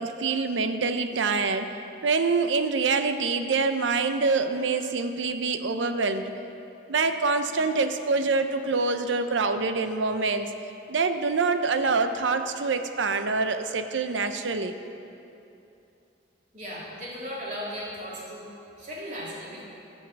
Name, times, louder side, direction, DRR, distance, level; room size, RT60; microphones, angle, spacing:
voice 1, 0.0-1.8 2.0-6.3 6.9-10.5 10.9-14.7, right 4 dB, 90° right, 8 dB, 0.6 m, -25 dB
voice 2, 16.5-18.5 18.8-19.6, equal, 45° right, -6 dB, 3.0 m, -36 dB
13.5 x 5.5 x 7.3 m, 2.7 s
head